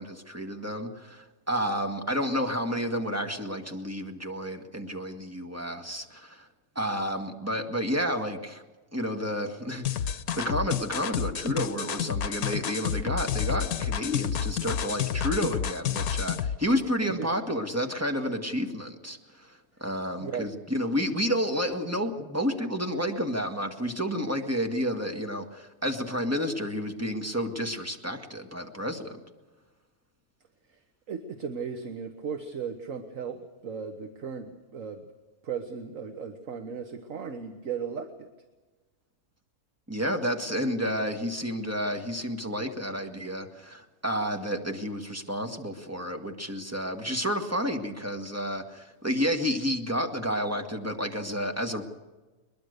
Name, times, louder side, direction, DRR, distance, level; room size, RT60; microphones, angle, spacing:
voice 1, 0.0-6.5 6.8-8.6 8.9-29.2 39.9-51.8, equal, 10° right, 4 dB, 1.8 m, -30 dB
sound 1, 9.8-16.6, left 9 dB, 75° left, 1.4 m, -30 dB
voice 2, 20.2-20.6 30.7-30.8 31.1-35.1 35.4-38.3, right 6 dB, 60° right, 7 dB, 1.6 m, -36 dB
22.0 x 21.5 x 6.7 m, 1.2 s
omnidirectional pair, 1.6 m